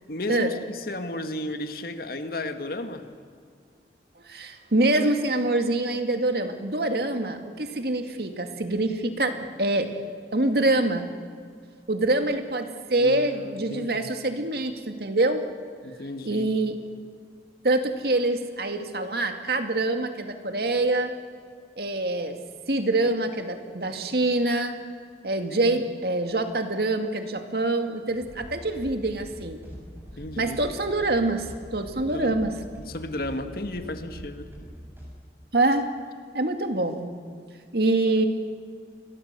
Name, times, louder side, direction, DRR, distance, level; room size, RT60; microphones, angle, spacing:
voice 1, 0.1-3.0 13.0-14.1 15.8-16.5 25.5-25.7 30.2-30.6 32.0-32.3 32.8-34.5, left 1 dB, 55° left, 8 dB, 1.8 m, -34 dB
voice 2, 4.3-10.0 10.3-11.1 11.9-15.4 16.3-16.8 17.6-21.1 21.8-22.4 22.7-24.8 25.2-29.6 30.4-32.5 35.5-35.9 36.3-37.5 37.7-38.3, right 2 dB, 60° right, 6 dB, 2.3 m, -25 dB
sound 1, 28.1-35.0, equal, 15° right, 7.9 m, -43 dB
28.5 x 22.5 x 6.9 m, 2.1 s
head